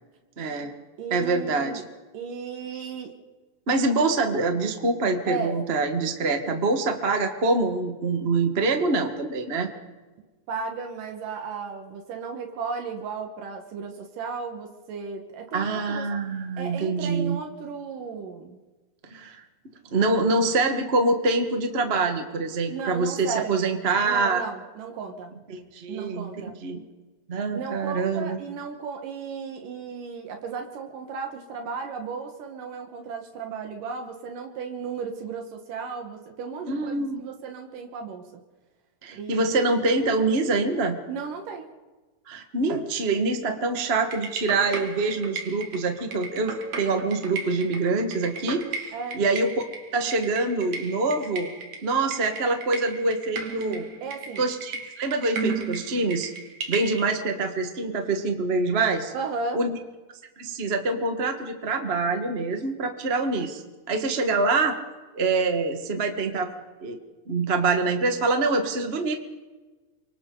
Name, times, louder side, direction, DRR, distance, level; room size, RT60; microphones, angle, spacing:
voice 1, 0.4-0.7 1.1-1.8 3.7-9.7 15.5-17.4 19.1-19.4 19.9-24.4 25.5-26.3 26.6-26.8 27.3-28.4 36.7-37.3 39.0-41.0 42.3-49.5 49.9-51.5 51.8-53.9 54.4-56.3 56.7-59.1 59.5-59.7 60.4-63.6 63.9-64.8 65.1-66.5 66.8-67.0 67.3-69.1, right 3 dB, 35° right, 5 dB, 1.0 m, -25 dB
voice 2, 1.0-1.8 2.1-3.1 5.3-5.6 10.5-16.1 16.6-18.6 22.7-23.7 24.0-25.3 25.9-26.5 27.5-38.4 39.1-39.6 41.1-41.7 48.9-49.2 54.0-54.4 59.1-59.6, right 5 dB, 85° right, 3 dB, 3.1 m, -35 dB
sound 1, 44.1-57.0, right 4 dB, 60° right, 3.1 m, -36 dB
29.5 x 24.5 x 3.9 m, 1.3 s
omnidirectional pair, 3.7 m